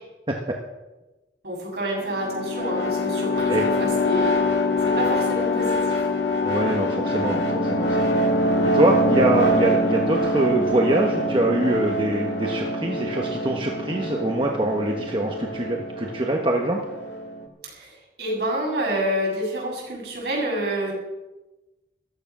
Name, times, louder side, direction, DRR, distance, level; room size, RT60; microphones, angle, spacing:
voice 1, 1.4-4.4 4.8-6.0 17.6-20.9, right 1 dB, 65° right, -2 dB, 7.4 m, -28 dB
sound 1, 2.0-17.4, left 1 dB, 75° left, 2.2 m, -24 dB
voice 2, 6.4-8.0 8.7-16.8, right 1 dB, 30° right, 1 dB, 1.3 m, -24 dB
14.5 x 13.0 x 6.1 m, 1.1 s
head